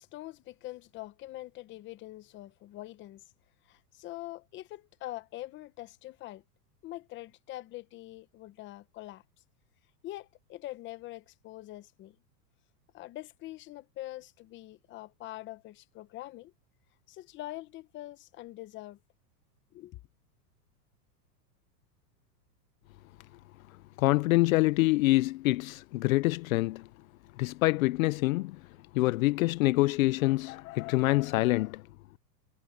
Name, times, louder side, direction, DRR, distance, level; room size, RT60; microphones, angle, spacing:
voice 1, 0.0-3.2 3.6-6.4 6.8-9.2 10.0-12.2 12.9-16.5 17.1-19.0 19.7-20.0, left 16 dB, 25° left, 0.9 m, -44 dB
voice 2, 24.0-26.9 27.4-28.6 28.9-31.8, left 20 dB, 55° left, 0.6 m, -26 dB
supercardioid pair, 145°, 50 cm